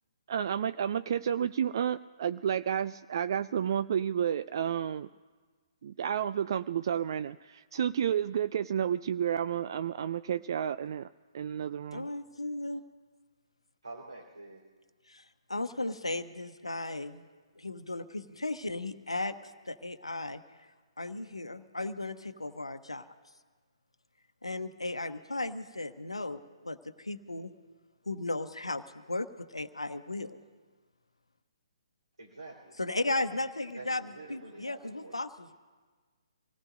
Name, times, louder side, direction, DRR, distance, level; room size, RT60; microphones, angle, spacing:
voice 1, 0.3-5.1 5.8-11.1 11.3-12.1, right 9 dB, 50° right, 14 dB, 0.3 m, -31 dB
voice 2, 11.9-12.8 15.1-17.3 17.6-19.4 19.7-20.4 21.0-23.1 24.4-27.5 28.1-30.4 32.8-34.0 34.3-35.5, left 2 dB, 85° left, 9 dB, 1.0 m, -35 dB
voice 3, 13.8-14.6 32.2-32.8 33.7-35.2, right 2 dB, 85° right, -5 dB, 4.0 m, -47 dB
26.5 x 17.5 x 2.6 m, 1.4 s
figure-of-eight pair, 130°, 3 cm